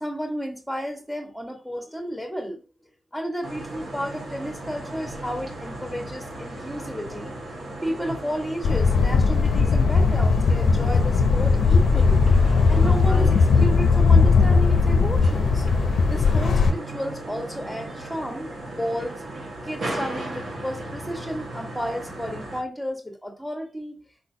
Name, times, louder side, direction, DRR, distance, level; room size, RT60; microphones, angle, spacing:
voice 1, 0.0-2.6 3.1-7.4 7.8-12.2 12.7-15.6 16.1-19.2 19.6-24.0, equal, ahead, 3 dB, 1.4 m, -32 dB
sound 1, 3.4-22.6, right 1 dB, 65° right, 1.4 m, -36 dB
sound 2, 8.6-16.7, left 4 dB, 80° left, 0.5 m, -18 dB
4.4 x 4.2 x 2.7 m, 0.33 s
cardioid pair, 70°, 0 cm